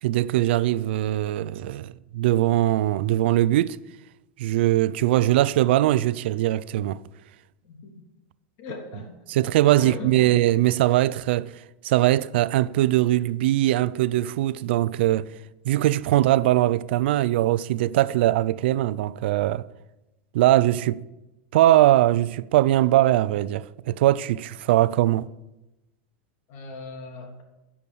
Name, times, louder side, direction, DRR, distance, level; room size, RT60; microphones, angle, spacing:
voice 1, 0.0-3.8 4.4-7.0 9.3-11.5 11.8-15.3 15.6-19.6 20.3-21.0 21.5-25.3, right 14 dB, 65° right, 0.5 m, -21 dB
voice 2, 7.6-8.0 8.6-9.2 9.8-10.4 26.5-27.4, left 3 dB, 45° left, 3.2 m, -38 dB
14.5 x 7.0 x 8.6 m
supercardioid pair, 160°, 6 cm